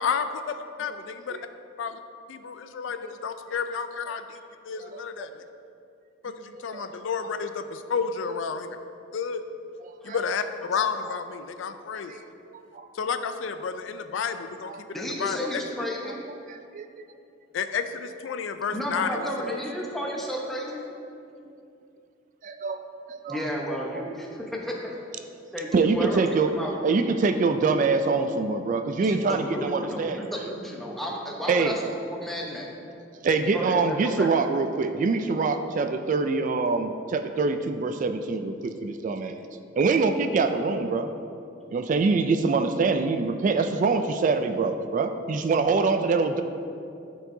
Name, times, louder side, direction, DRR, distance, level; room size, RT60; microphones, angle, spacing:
voice 1, 2.3-3.0 3.2-4.4 4.7-5.3 6.2-8.7 9.1-9.4 10.0-12.1 13.0-14.7 15.2-15.6 17.5-19.2 19.4-19.6, left 6 dB, 75° left, 9 dB, 0.4 m, -30 dB
voice 2, 4.8-5.3 6.5-6.8 7.4-7.5 9.8-10.2 10.8-10.9 12.1-12.2 12.5-12.9 14.7-14.8 16.5-16.9 19.2-19.3 21.4-21.5 22.4-22.8 23.1-23.4 23.9-24.0 25.7-26.5 26.8-30.2 31.5-31.8 33.2-39.4 39.8-41.1 41.7-46.4, right 4 dB, 40° right, 8 dB, 0.3 m, -25 dB
voice 3, 14.9-16.2 18.7-20.9 23.3-24.8 25.5-26.2 26.5-26.7 29.0-31.8 32.1-32.7 33.5-34.3, equal, ahead, -3 dB, 0.9 m, -32 dB
13.0 x 4.6 x 2.7 m, 2.6 s
head